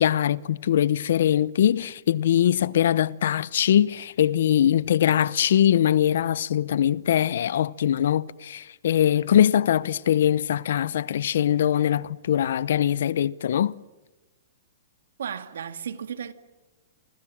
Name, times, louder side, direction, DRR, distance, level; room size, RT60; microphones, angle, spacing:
voice 1, 0.0-13.8, left 10 dB, 70° left, 0.8 m, -22 dB
voice 2, 15.2-16.3, right 8 dB, 80° right, 2.2 m, -34 dB
27.5 x 25.5 x 7.5 m
hypercardioid pair, 150°, 0 cm